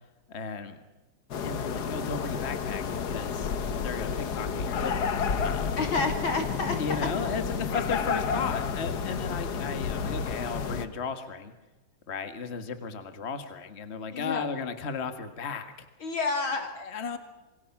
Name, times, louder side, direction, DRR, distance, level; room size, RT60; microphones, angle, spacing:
voice 1, 0.3-0.8 1.4-3.5 3.8-5.7 6.8-11.5 12.1-15.7 16.7-17.2, left 5 dB, 35° left, 9 dB, 1.9 m, -35 dB
sound 1, 1.3-10.9, left 6 dB, 55° left, 1.7 m, -31 dB
voice 2, 5.8-7.1 14.1-14.5 16.0-16.7, left 3 dB, 75° left, 5 dB, 4.0 m, -29 dB
27.5 x 23.5 x 6.0 m, 1.1 s
omnidirectional pair, 2.3 m